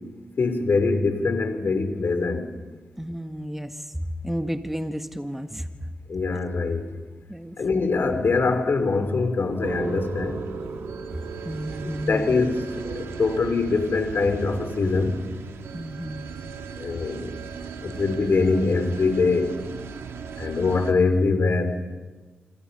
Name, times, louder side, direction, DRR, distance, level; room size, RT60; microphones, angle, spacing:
voice 1, 0.4-2.4 6.1-6.9 7.6-10.4 11.9-12.6 12.8-15.1 16.8-17.3 17.8-19.5 20.4-21.7, left 4 dB, 60° left, 7 dB, 3.8 m, -23 dB
voice 2, 3.0-3.9 4.2-5.9 7.3-7.6 11.4-12.5 15.7-16.2, equal, 5° right, 8 dB, 1.7 m, -32 dB
sound 1, 9.6-20.9, right 5 dB, 90° right, 1.9 m, -36 dB
26.5 x 25.0 x 5.6 m, 1.3 s
cardioid pair, 60°, 4 cm